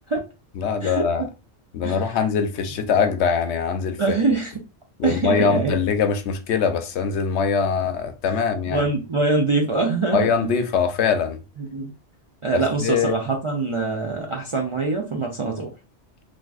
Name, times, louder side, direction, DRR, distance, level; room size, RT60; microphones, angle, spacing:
voice 1, 0.6-1.2 1.7-4.0 5.0-8.9 10.1-11.4 12.5-13.1, left 6 dB, 80° left, 0.9 m, -22 dB
voice 2, 4.0-4.5 5.0-5.8 8.3-10.5 11.6-11.9 12.4-15.7, right 3 dB, 45° right, 0.4 m, -24 dB
3.5 x 2.5 x 2.3 m
omnidirectional pair, 1.2 m